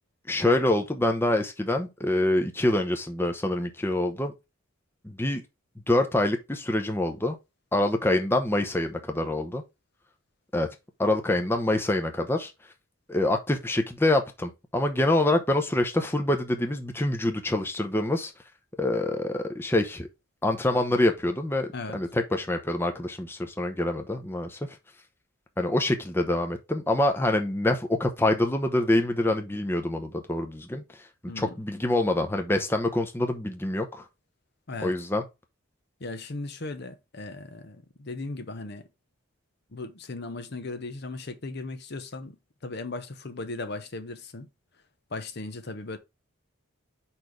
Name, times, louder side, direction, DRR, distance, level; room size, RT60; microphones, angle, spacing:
voice 1, 0.3-4.3 5.0-5.4 5.9-7.4 7.7-9.6 10.5-10.7 11.0-12.5 13.1-18.3 18.8-20.1 20.4-24.6 25.6-31.1 31.4-34.0 34.8-35.2, left 1 dB, 10° left, 0.7 m, -26 dB
voice 2, 36.0-38.9 39.7-44.5 45.1-46.0, left 3 dB, 50° left, 0.8 m, -37 dB
5.1 x 4.4 x 4.5 m
head